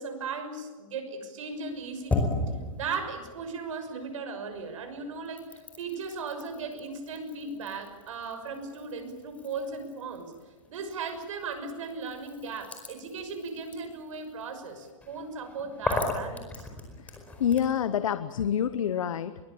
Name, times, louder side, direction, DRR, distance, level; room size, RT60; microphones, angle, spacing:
voice 1, 0.0-2.3 2.7-10.3 10.7-16.7, right 4 dB, 75° right, 7 dB, 6.2 m, -37 dB
sound 1, 1.5-4.2 4.5-17.8, left 2 dB, 10° left, 4.8 m, -38 dB
voice 2, 17.0-19.4, left 9 dB, 90° left, 12 dB, 1.1 m, -28 dB
23.0 x 22.5 x 8.8 m, 1.3 s
hypercardioid pair, 150°, 17 cm